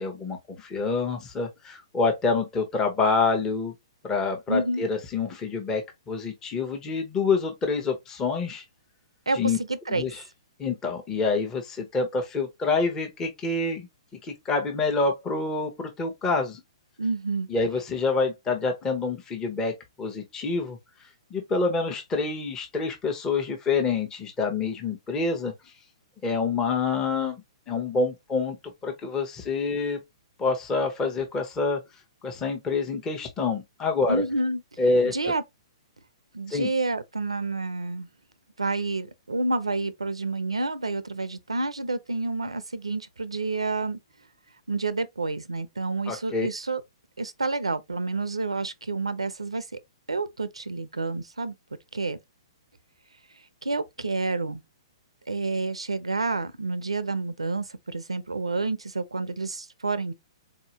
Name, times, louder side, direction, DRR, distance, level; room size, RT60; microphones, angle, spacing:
voice 1, 0.0-3.7 4.0-8.6 9.3-9.6 9.9-10.2 10.6-13.9 14.2-16.6 17.5-20.8 21.3-25.5 26.2-28.6 28.8-30.0 30.4-31.8 32.2-34.2 34.8-35.1 36.5-36.7 46.1-46.5, left 4 dB, 20° left, 0.9 m, -27 dB
voice 2, 4.5-4.8 9.3-10.1 17.0-17.5 34.1-34.6 35.0-35.4 36.3-38.1 38.6-44.0 44.7-46.8 47.2-49.8 50.1-51.5 51.9-52.2 53.6-54.6 55.3-60.1, right 3 dB, 90° right, 0.5 m, -29 dB
4.1 x 2.8 x 2.8 m
figure-of-eight pair, 120°, 3 cm